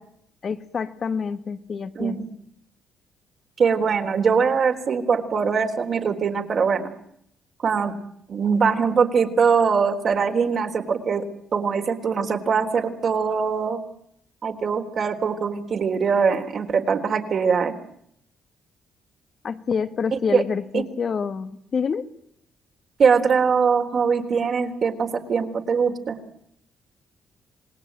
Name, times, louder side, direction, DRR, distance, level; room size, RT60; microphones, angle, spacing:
voice 1, 0.4-2.2 19.4-22.1, left 6 dB, 50° left, 11 dB, 1.9 m, -27 dB
voice 2, 2.0-2.3 3.6-6.9 7.6-7.9 8.3-11.2 11.5-13.8 14.4-17.8 20.1-20.4 20.7-20.8 23.0-26.2, right 6 dB, 50° right, 4 dB, 3.9 m, -22 dB
27.5 x 20.0 x 9.1 m, 0.70 s
cardioid pair, 90°, 0 cm